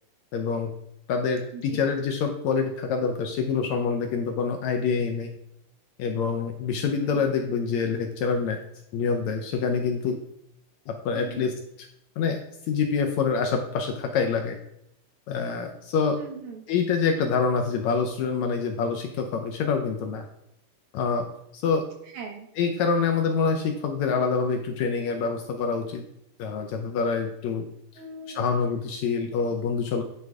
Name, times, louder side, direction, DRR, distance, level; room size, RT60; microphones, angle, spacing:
voice 1, 0.3-0.7 1.1-5.3 6.0-8.6 8.9-10.2 10.9-11.5 12.2-12.4 12.7-14.6 15.3-16.2 16.7-20.3 20.9-21.2 21.5-21.8 22.6-26.0 26.4-27.7 28.4-30.0, left 5 dB, 75° left, 4 dB, 1.8 m, -26 dB
voice 2, 1.5-1.9 7.0-7.4 11.1-11.5 16.2-16.6 22.1-22.5 28.0-28.4, right 4 dB, 70° right, 3 dB, 2.5 m, -40 dB
10.5 x 3.9 x 4.7 m, 0.77 s
omnidirectional pair, 3.7 m